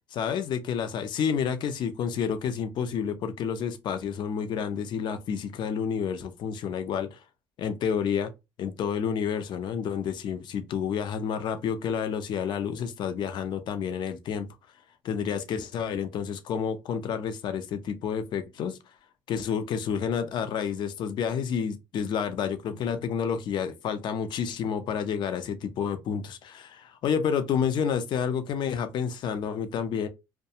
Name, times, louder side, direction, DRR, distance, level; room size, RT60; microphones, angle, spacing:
voice 1, 0.1-7.2 7.6-8.3 8.6-14.5 15.0-18.8 19.3-30.1, left 7 dB, 55° left, 0.5 m, -29 dB
2.3 x 2.2 x 2.7 m
cardioid pair, 100°, 9 cm